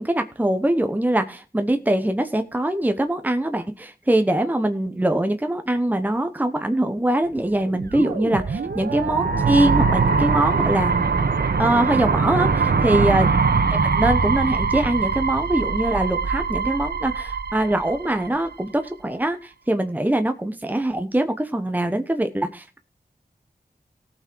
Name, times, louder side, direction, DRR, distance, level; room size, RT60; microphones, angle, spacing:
voice 1, 0.0-10.9 11.6-13.3 14.0-22.8, right 1 dB, 10° right, 7 dB, 1.1 m, -23 dB
sound 1, 7.6-18.5, right 5 dB, 90° right, 1.3 m, -22 dB
18.0 x 6.1 x 4.6 m, 0.33 s
wide cardioid pair, 75°, 16 cm